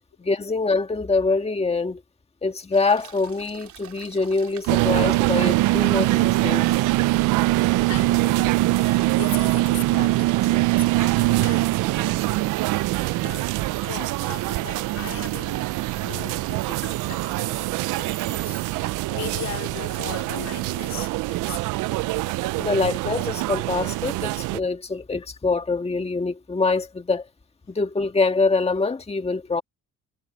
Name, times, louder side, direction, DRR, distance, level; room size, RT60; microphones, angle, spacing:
voice 1, 0.2-2.0 2.4-6.6 22.6-27.3 27.7-29.6, left 3 dB, 20° left, 1.7 m, -24 dB
sound 1, 2.7-20.7, right 10 dB, 70° right, 3.4 m, -46 dB
sound 2, 4.7-24.6, right 19 dB, 85° right, 0.5 m, -23 dB
voice 2, 7.9-12.4 13.2-13.6 13.8-21.6, left 9 dB, 65° left, 2.9 m, -39 dB
cardioid pair, 90°, 30 cm